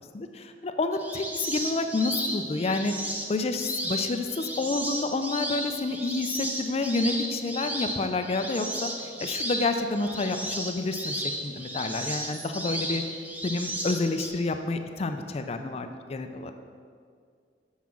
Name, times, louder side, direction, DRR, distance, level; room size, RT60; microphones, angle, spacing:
voice 1, 0.1-2.9 3.3-8.9 9.2-13.0 13.4-16.5, left 3 dB, 35° left, 7 dB, 0.4 m, -29 dB
sound 1, 0.9-14.3, right 1 dB, 10° right, 0.7 m, -34 dB
6.2 x 5.6 x 5.9 m, 2.1 s
head